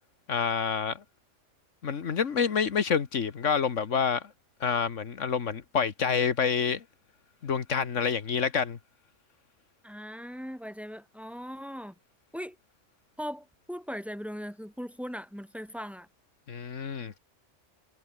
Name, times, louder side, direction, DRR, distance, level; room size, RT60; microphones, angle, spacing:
voice 1, 0.3-1.0 1.8-4.3 4.6-6.8 7.4-8.8 16.5-17.2, left 6 dB, 80° left, 1.7 m, -28 dB
voice 2, 9.8-11.9 12.3-12.6 13.2-16.1, equal, ahead, 5.8 m, -39 dB
omnidirectional pair, 1.3 m